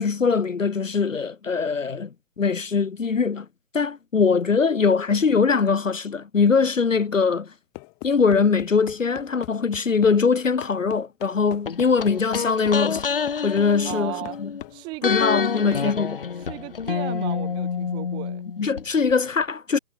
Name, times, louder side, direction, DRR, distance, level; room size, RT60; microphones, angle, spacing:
voice 1, 0.0-3.5 3.7-7.5 8.0-13.1 13.4-14.5 15.0-16.2 18.6-19.8, left 5 dB, 60° left, 1.1 m, -22 dB
sound 1, 7.7-10.2 10.6-14.8 15.1-15.3 15.7-15.9, left 32 dB, 5° left, 1.6 m, -40 dB
sound 2, 11.7-14.6 15.0-18.8 19.1-19.2, left 6 dB, 40° left, 4.8 m, -28 dB
voice 2, 13.8-14.4 14.7-15.1 15.6-16.0 16.5-18.5, right 23 dB, 10° right, 4.2 m, -35 dB
figure-of-eight pair, 160°, 43 cm